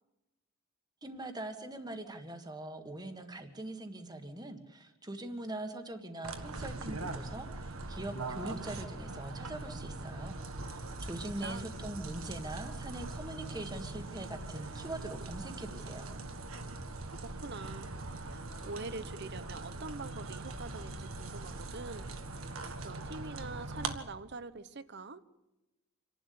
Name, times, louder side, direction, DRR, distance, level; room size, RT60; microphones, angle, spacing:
voice 1, 1.0-16.1, right 1 dB, 20° right, 6 dB, 1.7 m, -42 dB
sound 1, 6.2-23.9, right 2 dB, 75° right, 1.7 m, -41 dB
voice 2, 11.2-11.7 17.2-17.9 18.3-22.1 22.8-25.2, right 3 dB, 55° right, 14 dB, 1.0 m, -44 dB
27.0 x 11.5 x 8.6 m, 0.99 s
head